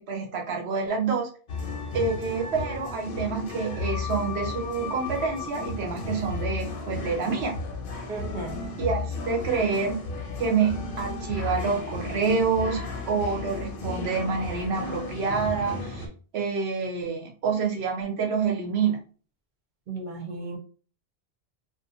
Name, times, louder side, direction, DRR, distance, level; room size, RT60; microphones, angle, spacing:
voice 1, 0.1-1.3 1.9-7.6 8.8-10.1 10.4-16.1 16.3-19.0, right 5 dB, 85° right, 1.0 m, -27 dB
sound 1, 1.5-16.1, left 3 dB, 65° left, 0.7 m, -34 dB
voice 2, 8.1-8.6 19.9-20.6, right 3 dB, 55° right, 0.7 m, -35 dB
2.5 x 2.2 x 2.6 m
omnidirectional pair, 1.1 m